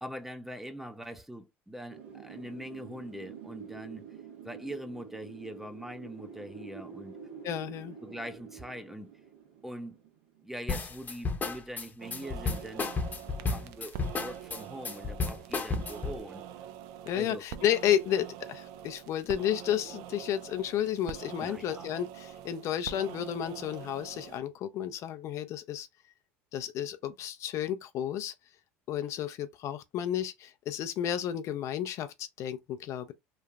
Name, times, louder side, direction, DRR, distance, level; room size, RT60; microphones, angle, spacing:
voice 1, 0.0-4.0 4.4-7.1 8.0-9.1 9.6-10.0 10.4-12.9 13.4-16.4 17.1-17.4 21.4-21.9, equal, 5° right, 0.5 m, -42 dB
Wind, 1.9-10.6, right 7 dB, 85° right, 1.1 m, -48 dB
voice 2, 7.4-8.0 17.1-25.9 26.5-28.3 28.9-33.1, left 10 dB, 55° left, 0.4 m, -32 dB
sound 1, 10.7-16.2, left 4 dB, 30° left, 0.7 m, -32 dB
sound 2, 12.0-24.4, right 10 dB, 70° right, 0.4 m, -45 dB
3.0 x 2.4 x 2.3 m
hypercardioid pair, 80°, 6 cm